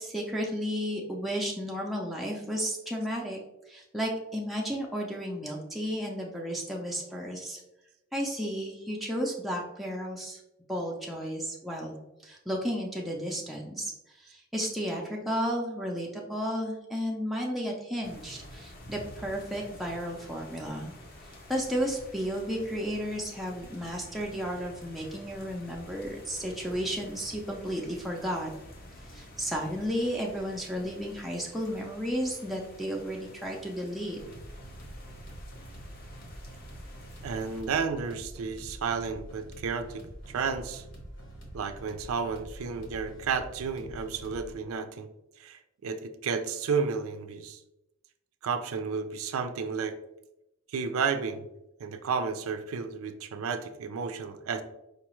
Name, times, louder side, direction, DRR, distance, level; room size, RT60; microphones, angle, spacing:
voice 1, 0.0-3.4 3.7-7.6 8.1-10.4 10.7-11.9 12.2-13.9 14.2-20.9 21.5-28.5 29.1-34.2, equal, ahead, -3 dB, 0.4 m, -33 dB
sound 1, 18.0-37.6, left 1 dB, 45° left, 0.6 m, -49 dB
sound 2, 34.2-44.5, right 1 dB, 60° left, 1.0 m, -46 dB
voice 2, 37.2-40.8 41.5-45.1 45.4-47.6 48.4-50.0 50.7-51.5 51.8-54.6, right 5 dB, 85° right, 9 dB, 0.4 m, -32 dB
4.8 x 2.3 x 3.0 m, 0.91 s
head